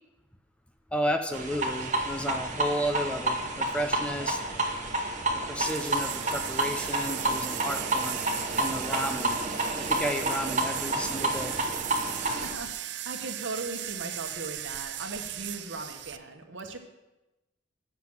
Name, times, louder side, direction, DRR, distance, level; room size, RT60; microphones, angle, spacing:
voice 1, 0.9-4.4 5.5-8.2 8.6-9.4 9.8-11.5, equal, 5° left, 5 dB, 0.5 m, -32 dB
sound 1, 1.3-12.5, right 1 dB, 40° right, 1.2 m, -30 dB
sound 2, 5.6-16.2, right 12 dB, 60° right, 0.5 m, -37 dB
voice 2, 12.1-16.8, right 3 dB, 80° right, 5 dB, 1.1 m, -38 dB
7.7 x 5.9 x 7.3 m, 1.0 s
head